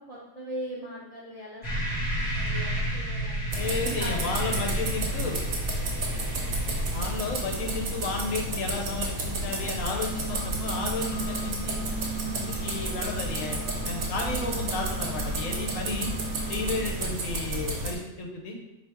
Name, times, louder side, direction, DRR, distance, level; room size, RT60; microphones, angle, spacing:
voice 1, 0.1-4.3, equal, 45° right, -7 dB, 0.5 m, -41 dB
sound 1, 1.6-7.2, right 1 dB, 30° left, 1.3 m, -31 dB
sound 2, 3.5-17.9, right 1 dB, 80° right, 1.2 m, -32 dB
voice 2, 3.6-5.4 6.9-11.8 12.3-16.1 16.5-18.6, left 3 dB, 70° left, 1 dB, 1.1 m, -33 dB
sound 3, 9.8-16.9, right 3 dB, 90° left, 1.2 m, -38 dB
4.2 x 2.8 x 3.4 m, 0.90 s
omnidirectional pair, 1.5 m